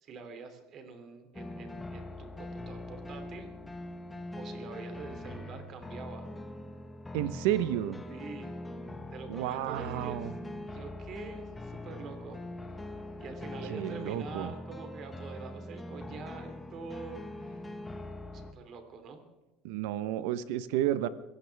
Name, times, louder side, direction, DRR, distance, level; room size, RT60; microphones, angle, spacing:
voice 1, 0.0-3.5 4.4-6.3 8.1-8.5 9.1-10.3 10.6-12.8 13.2-17.7 18.3-19.2, right 5 dB, 40° right, 7 dB, 3.0 m, -45 dB
sound 1, 1.3-18.5, left 1 dB, 10° left, 1.3 m, -42 dB
voice 2, 7.1-8.0 9.3-10.3 13.7-14.5 19.6-21.1, right 12 dB, 85° right, 14 dB, 1.0 m, -31 dB
24.5 x 16.5 x 3.5 m, 1.1 s
cardioid pair, 150°, 0 cm